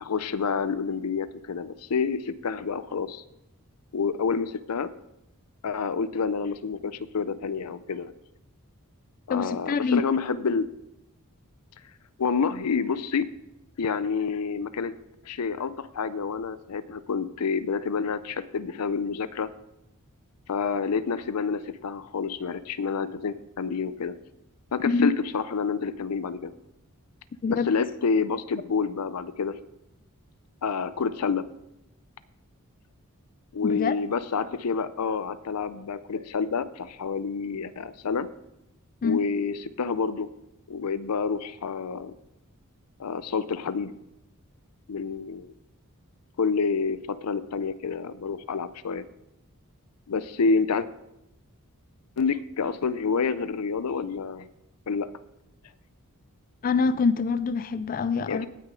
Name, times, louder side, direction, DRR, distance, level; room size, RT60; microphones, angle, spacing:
voice 1, 0.0-3.2 3.9-4.9 5.6-8.1 9.3-10.7 12.2-13.3 13.8-14.9 15.2-19.5 20.5-24.2 24.7-26.5 27.5-29.6 30.6-31.5 33.5-38.3 39.0-40.3 40.7-42.1 43.0-43.9 44.9-45.5 46.4-49.1 50.1-50.9 52.2-54.5 54.9-55.1 58.3-58.5, left 5 dB, 85° left, 15 dB, 0.6 m, -28 dB
voice 2, 9.3-10.0 24.9-25.1 27.4-27.7 33.6-33.9 39.0-39.2 56.6-58.5, left 4 dB, 40° left, 14 dB, 0.3 m, -25 dB
17.5 x 6.4 x 3.7 m, 0.87 s
head